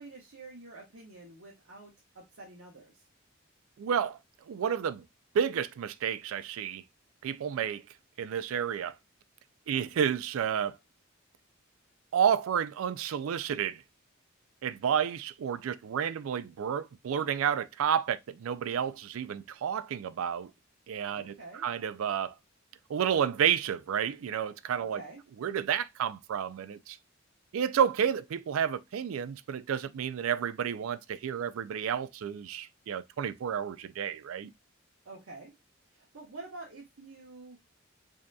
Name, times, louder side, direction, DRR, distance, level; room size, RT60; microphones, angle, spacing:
voice 1, 0.0-3.0 9.7-9.9 21.1-21.7 24.8-25.2 35.0-35.5 35.9-37.6, right 3 dB, 70° right, 1.0 m, -48 dB
voice 2, 3.8-4.2 4.5-5.0 5.3-6.8 7.2-7.8 8.2-8.9 9.7-10.8 12.1-13.8 14.6-20.5 20.9-22.3 22.9-25.0 25.4-27.0 27.5-34.5, right 8 dB, 90° right, 0.4 m, -30 dB
5.0 x 2.8 x 2.2 m
head